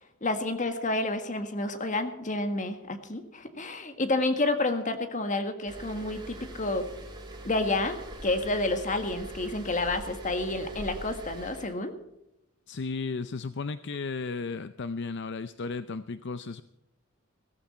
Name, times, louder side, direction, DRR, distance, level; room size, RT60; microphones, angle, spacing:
voice 1, 0.2-6.9 7.4-11.9, left 2 dB, 40° left, 8 dB, 1.7 m, -29 dB
sound 1, 5.7-11.7, right 1 dB, 25° right, 3.2 m, -43 dB
voice 2, 12.7-16.6, left 4 dB, 60° left, 12 dB, 0.6 m, -34 dB
17.0 x 14.0 x 4.3 m, 0.86 s
head